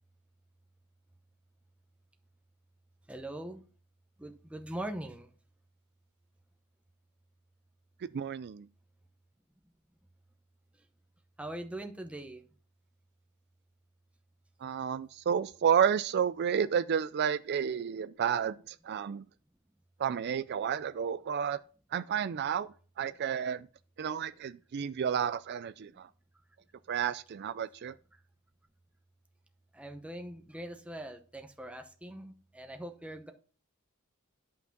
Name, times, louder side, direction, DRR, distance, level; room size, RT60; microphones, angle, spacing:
voice 1, 3.1-3.6 4.2-5.3 11.4-12.4 29.7-33.3, right 1 dB, 5° right, 0.8 m, -42 dB
voice 2, 8.0-8.7 14.6-19.2 20.0-21.6 21.9-23.7 24.0-26.1 26.9-27.9, right 8 dB, 50° right, 0.4 m, -31 dB
11.0 x 5.8 x 6.0 m
head